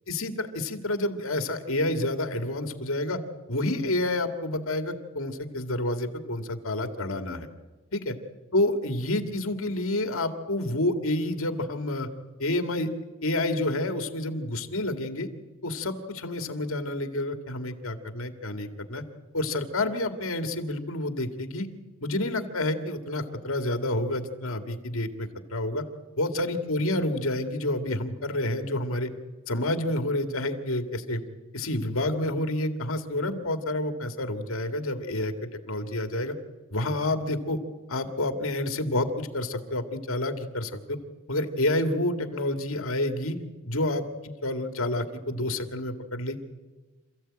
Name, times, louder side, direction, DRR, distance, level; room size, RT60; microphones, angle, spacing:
voice 1, 0.1-3.2 3.5-7.5 7.9-8.2 8.5-12.1 12.4-12.9 13.2-15.3 15.6-19.0 19.3-21.7 22.0-25.8 26.2-29.1 29.5-31.2 31.5-36.3 36.7-37.6 37.9-41.0 41.3-43.4 43.7-46.4, left 1 dB, 80° left, 7 dB, 2.1 m, -29 dB
28.0 x 15.0 x 8.8 m, 1.3 s
head